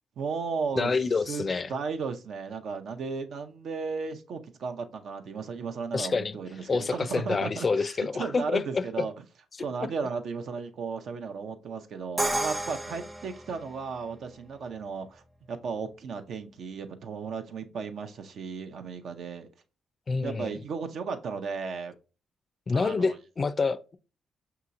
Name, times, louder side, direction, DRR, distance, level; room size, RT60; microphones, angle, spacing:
voice 1, 0.2-1.0 1.3-9.1 9.6-19.5 20.2-21.9 22.7-23.1, right 5 dB, 70° right, 0.6 m, -35 dB
voice 2, 0.8-1.7 5.9-6.4 6.7-9.0 9.8-9.9 20.1-20.6 22.7-24.0, left 4 dB, 40° left, 0.4 m, -27 dB
Crash cymbal, 12.2-14.1, right 1 dB, 15° right, 0.7 m, -31 dB
5.6 x 2.9 x 2.5 m
supercardioid pair, 65°, 0 cm